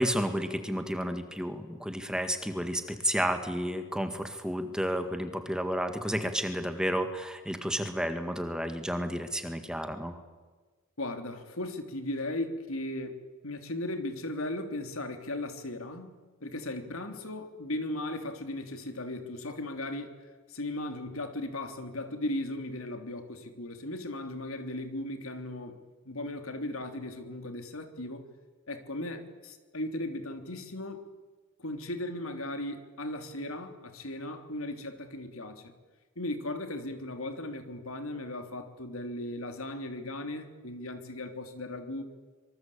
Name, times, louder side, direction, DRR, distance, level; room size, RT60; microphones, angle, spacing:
voice 1, 0.0-10.2, equal, 5° right, 7 dB, 1.8 m, -31 dB
voice 2, 11.0-13.1 13.4-20.1 20.5-25.8 26.0-28.2 28.7-31.0 31.6-35.7 36.1-42.0, left 1 dB, 80° left, 6 dB, 3.3 m, -37 dB
26.0 x 24.5 x 8.7 m, 1.3 s
head